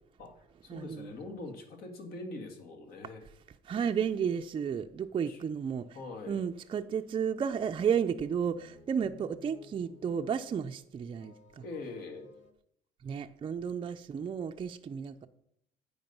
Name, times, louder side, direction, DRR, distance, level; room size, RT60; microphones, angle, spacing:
voice 1, 0.2-3.2 5.3-5.4 5.9-6.4 11.6-12.3, left 2 dB, 65° left, 4 dB, 1.8 m, -43 dB
voice 2, 0.7-1.1 3.7-5.9 6.3-11.6 13.0-15.3, right 7 dB, 30° right, 5 dB, 0.4 m, -32 dB
sound 1, 7.4-10.8 11.0-12.5, left 5 dB, 45° left, 0.9 m, -57 dB
8.8 x 5.2 x 5.4 m, 0.74 s
cardioid pair, 110°, 17 cm